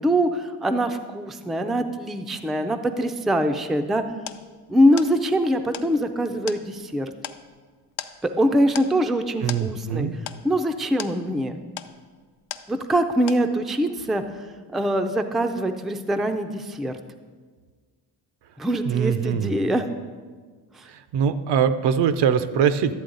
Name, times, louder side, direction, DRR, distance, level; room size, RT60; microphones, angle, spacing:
voice 1, 0.0-4.0 4.7-7.1 8.4-10.1 10.4-11.6 12.7-17.0 18.6-19.8 20.8-20.9, equal, ahead, 7 dB, 0.3 m, -23 dB
sound 1, 3.6-13.0 13.3-13.9, left 11 dB, 70° left, 0.6 m, -40 dB
voice 2, 9.4-10.2 18.8-19.5 21.1-22.9, right 7 dB, 75° right, 11 dB, 0.7 m, -22 dB
12.0 x 7.9 x 3.8 m, 1.5 s
cardioid pair, 120°, 42 cm